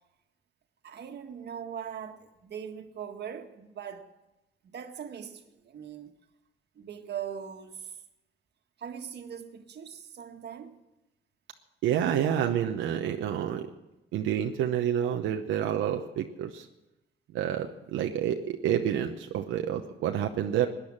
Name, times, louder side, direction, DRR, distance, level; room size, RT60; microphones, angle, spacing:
voice 1, 0.8-4.1 4.6-6.1 6.7-7.9 8.8-10.8 12.4-12.6, right 8 dB, 60° right, 1.6 m, -40 dB
voice 2, 11.8-13.6 14.1-16.7 17.3-20.7, right 10 dB, 85° right, 0.9 m, -28 dB
18.0 x 10.5 x 7.4 m
cardioid pair, 90°, 20 cm